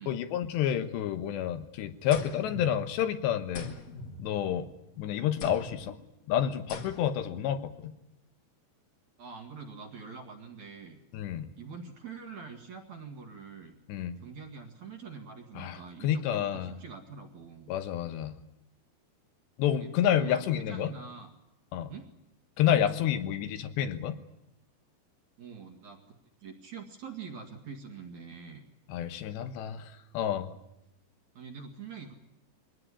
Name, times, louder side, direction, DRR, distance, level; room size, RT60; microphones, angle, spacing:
voice 1, 0.1-3.7 4.2-4.7 5.0-6.0 6.3-8.0 11.1-11.5 13.9-14.2 15.6-15.8 16.0-16.7 17.7-18.4 19.6-20.9 21.7-21.9 22.6-24.2 28.9-30.5, left 10 dB, 75° left, 9 dB, 3.3 m, -29 dB
sound 1, 2.1-3.2 3.5-4.8 5.4-5.9 6.7-7.3, left 2 dB, 45° left, 2.7 m, -42 dB
voice 2, 9.2-11.0 11.6-13.8 14.2-17.7 19.8-19.9 20.2-21.3 21.9-22.1 25.4-26.0 26.4-28.6 31.3-32.1, right 5 dB, 50° right, 4 dB, 2.7 m, -45 dB
23.0 x 18.0 x 9.9 m, 0.88 s
omnidirectional pair, 5.1 m